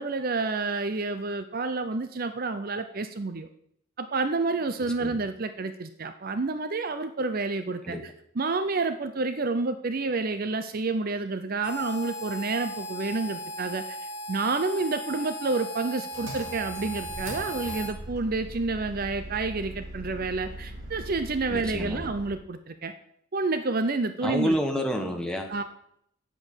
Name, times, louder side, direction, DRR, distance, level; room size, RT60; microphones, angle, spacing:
voice 1, 0.0-3.5 4.0-8.0 8.4-14.0 14.3-22.9 23.3-24.6 25.5-25.6, right 3 dB, 40° right, 10 dB, 0.6 m, -29 dB
Harmonica, 11.6-18.0, equal, 20° left, 1.5 m, -37 dB
Engine, 16.1-22.4, right 1 dB, 60° right, 4.5 m, -40 dB
voice 2, 21.5-22.1 24.2-25.5, equal, 5° left, 3 dB, 1.2 m, -29 dB
8.8 x 7.9 x 7.2 m, 0.73 s
head